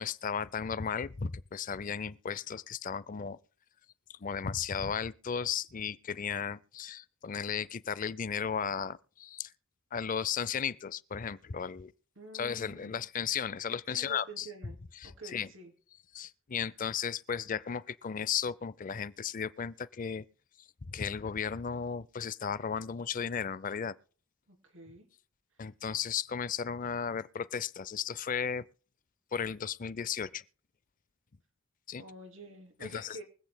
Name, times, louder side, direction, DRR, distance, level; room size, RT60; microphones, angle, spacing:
voice 1, 0.0-3.4 4.1-9.5 9.9-11.9 12.3-15.5 16.1-20.3 20.9-24.0 25.6-28.6 29.3-30.4 31.9-32.0 32.8-33.2, left 7 dB, 40° left, 0.5 m, -35 dB
voice 2, 12.2-13.0 13.9-14.8 15.0-15.7 24.5-25.1 32.0-33.2, right 2 dB, 75° right, 3.1 m, -48 dB
24.0 x 8.3 x 2.2 m
head